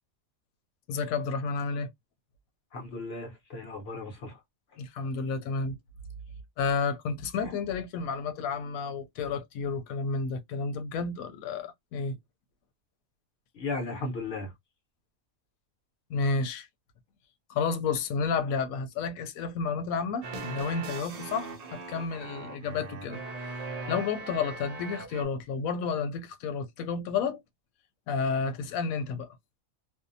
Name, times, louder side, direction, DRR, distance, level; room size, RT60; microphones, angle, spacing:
voice 1, 0.9-1.9 4.8-5.8 6.6-12.2 16.1-16.7 17.5-23.6 23.9-27.4 28.1-29.3, left 5 dB, 90° left, 1.0 m, -31 dB
voice 2, 2.7-4.3 13.6-14.5, left 3 dB, 50° left, 1.1 m, -35 dB
sound 1, 20.2-25.2, right 3 dB, 65° right, 0.3 m, -40 dB
2.7 x 2.1 x 2.5 m
omnidirectional pair, 1.4 m